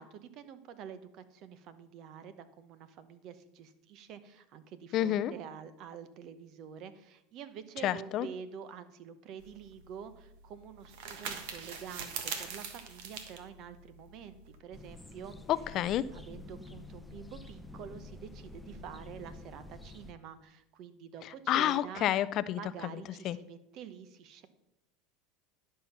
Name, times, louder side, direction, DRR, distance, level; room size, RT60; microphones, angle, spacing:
voice 1, 0.0-15.4 16.1-22.1 22.5-24.5, right 7 dB, 55° right, 12 dB, 1.0 m, -47 dB
voice 2, 4.9-5.3 7.8-8.3 15.5-16.0 21.5-22.6 23.2-23.4, left 12 dB, 50° left, 17 dB, 0.4 m, -29 dB
sound 1, 9.4-14.6, right 6 dB, 70° right, 1.3 m, -43 dB
sound 2, 14.7-20.1, left 2 dB, 5° left, 0.7 m, -48 dB
11.0 x 5.6 x 5.8 m, 0.84 s
supercardioid pair, 105°, 0 cm